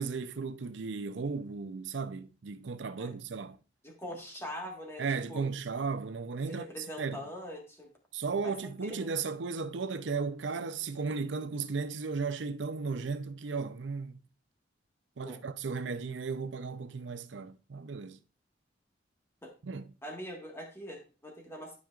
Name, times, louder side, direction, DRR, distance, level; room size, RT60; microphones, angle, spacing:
voice 1, 0.0-3.6 5.0-7.2 8.1-14.2 15.2-18.2 19.6-19.9, right 4 dB, 85° right, 0.6 m, -35 dB
voice 2, 3.8-5.0 5.3-5.4 6.5-7.9 8.4-8.6 8.8-9.1 15.2-15.4 19.4-19.5 20.0-21.8, equal, 15° left, 1.5 m, -42 dB
12.0 x 5.2 x 2.4 m
head